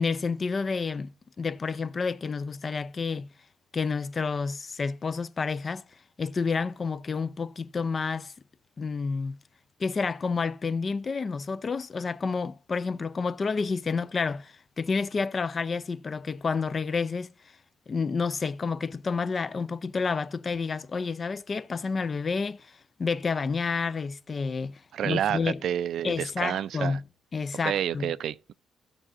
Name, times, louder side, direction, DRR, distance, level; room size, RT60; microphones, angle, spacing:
voice 1, 0.0-3.3 3.7-5.8 6.2-8.3 8.8-9.4 9.8-17.3 17.9-22.7 23.0-25.6 26.0-27.0 27.3-28.1, left 4 dB, 35° left, 0.4 m, -29 dB
voice 2, 24.9-27.0 27.6-28.5, right 10 dB, 70° right, 0.4 m, -29 dB
16.0 x 6.2 x 2.5 m
cardioid pair, 90°, 0 cm